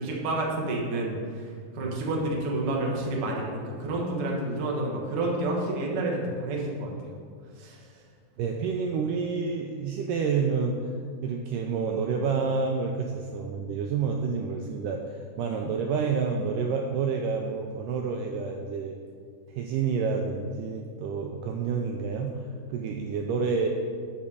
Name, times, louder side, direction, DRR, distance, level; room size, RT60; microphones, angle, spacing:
voice 1, 0.0-1.4 1.7-7.2 7.6-7.8, right 2 dB, 55° right, -2 dB, 1.7 m, -29 dB
voice 2, 8.4-10.8 11.2-18.9 19.5-22.4 22.7-23.7, right 5 dB, 80° right, 2 dB, 2.0 m, -29 dB
6.8 x 5.2 x 6.8 m, 2.1 s
omnidirectional pair, 4.1 m